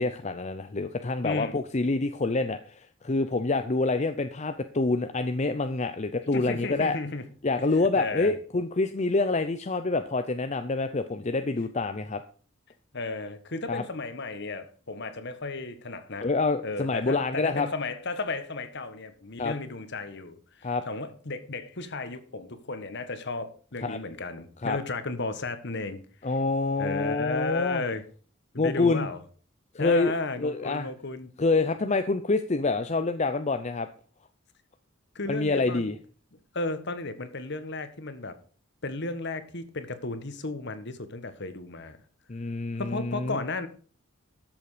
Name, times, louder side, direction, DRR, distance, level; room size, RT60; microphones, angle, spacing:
voice 1, 0.0-7.0 7.4-12.2 13.7-13.8 16.2-17.7 19.4-19.5 20.6-20.8 23.8-24.0 24.6-24.8 26.2-27.8 28.6-29.1 29.7-30.1 30.4-30.9 31.4-33.9 35.3-35.9 42.3-43.4, left 3 dB, 35° left, 9 dB, 0.6 m, -27 dB
voice 2, 1.2-1.6 6.3-7.3 8.0-8.3 12.9-16.3 16.6-26.3 26.8-28.0 28.5-29.2 29.8-31.3 35.1-35.9 36.5-38.3 38.8-42.0 42.8-43.7, left 3 dB, 55° left, 11 dB, 1.5 m, -34 dB
13.0 x 7.2 x 5.0 m, 0.41 s
head